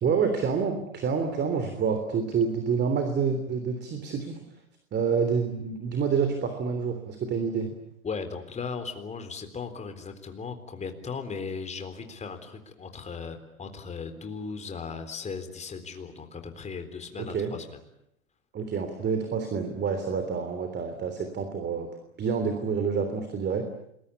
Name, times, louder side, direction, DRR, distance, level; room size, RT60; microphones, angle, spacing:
voice 1, 0.0-4.4 4.9-7.7 17.2-17.5 18.5-21.9 22.2-23.7, right 6 dB, 25° right, 7 dB, 3.4 m, -28 dB
voice 2, 8.0-17.8, left 5 dB, 15° left, 7 dB, 3.8 m, -37 dB
28.5 x 21.5 x 8.5 m, 0.76 s
hypercardioid pair, 115°, 41 cm